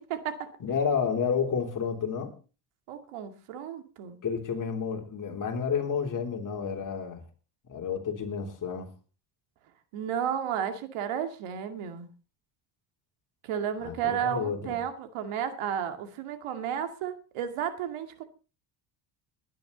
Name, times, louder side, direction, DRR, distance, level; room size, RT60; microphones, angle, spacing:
voice 1, 0.0-0.5 2.9-4.2 9.9-12.1 13.4-18.2, right 9 dB, 85° right, 2.4 m, -33 dB
voice 2, 0.6-2.3 4.2-7.2 7.7-8.9 13.8-14.8, left 6 dB, 40° left, 3.5 m, -30 dB
21.0 x 10.5 x 4.0 m
cardioid pair, 125°, 49 cm